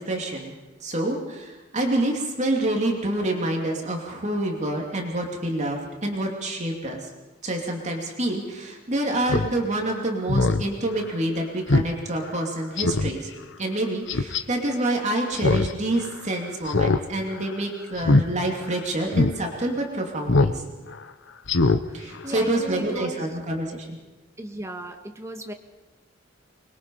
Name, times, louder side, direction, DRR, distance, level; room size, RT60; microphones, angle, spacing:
voice 1, 0.0-7.1 7.4-13.3 13.6-20.6 21.9-24.0, right 1 dB, 35° right, 0 dB, 2.9 m, -27 dB
Speech synthesizer, 9.3-9.5 9.9-10.0 10.3-10.6 11.0-11.1 11.7-11.9 12.3-12.4 12.8-13.1 14.1-14.4 15.3-15.7 16.0-16.1 16.7-17.0 17.3-17.5 18.0-18.2 18.7-18.8 19.1-19.3 20.3-20.6 20.9-21.0 21.5-21.8 22.1-22.2, left 3 dB, 65° left, 0.9 m, -21 dB
voice 2, 21.8-23.3 24.4-25.5, right 1 dB, 15° right, 4 dB, 1.7 m, -36 dB
24.5 x 21.5 x 5.6 m, 1.2 s
head